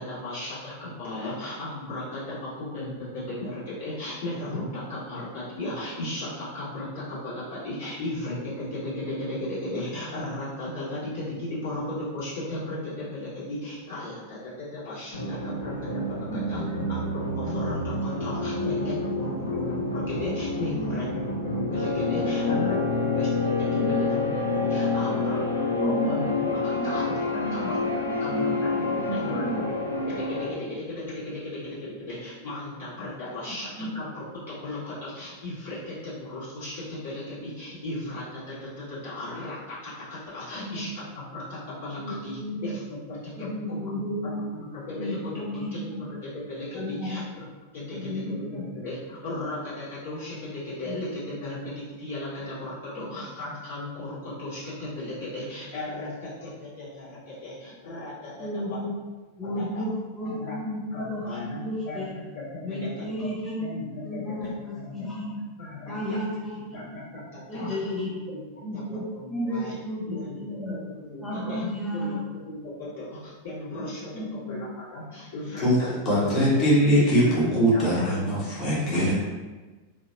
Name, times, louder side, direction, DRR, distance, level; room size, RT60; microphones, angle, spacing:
voice 1, 0.0-22.8 23.0-25.4 25.8-27.1 27.5-27.8 28.2-28.8 29.1-29.4 30.1-30.6 30.9-33.7 33.9-44.0 44.7-47.2 47.7-58.8 59.4-59.8 60.2-60.6 60.9-61.6 61.8-62.2 62.5-63.3 63.6-65.3 65.6-66.2 66.7-67.9 68.3-68.4 68.7-68.8 69.1-69.7 70.1-70.6 70.9-71.6 71.9-74.1 74.5-74.6 74.9-76.4 76.9-78.1 78.7-79.1, left 1 dB, 60° left, -11 dB, 1.5 m, -36 dB
sound 1, 15.1-30.5, left 3 dB, 80° left, 0.4 m, -28 dB
voice 2, 16.2-16.7 19.1-19.5 20.7-21.1 22.1-22.6 22.8-22.9 23.7-24.2 24.8-25.2 25.7-26.9 27.3-29.6 33.5-33.9 40.6-40.9 42.0-42.7 43.4-44.4 44.9-46.0 46.7-47.2 47.9-48.6 50.9-51.2 58.4-59.0 59.4-62.1 62.6-65.4 65.9-67.0 67.5-68.1 68.6-70.8 71.2-72.3 73.8-73.9 74.1-74.6 75.5-75.6 76.8-77.0, equal, 5° left, -8 dB, 0.5 m, -33 dB
voice 3, 76.0-79.1, equal, 30° left, -8 dB, 1.0 m, -21 dB
2.7 x 2.3 x 2.4 m, 1.3 s
figure-of-eight pair, 90°, 0 cm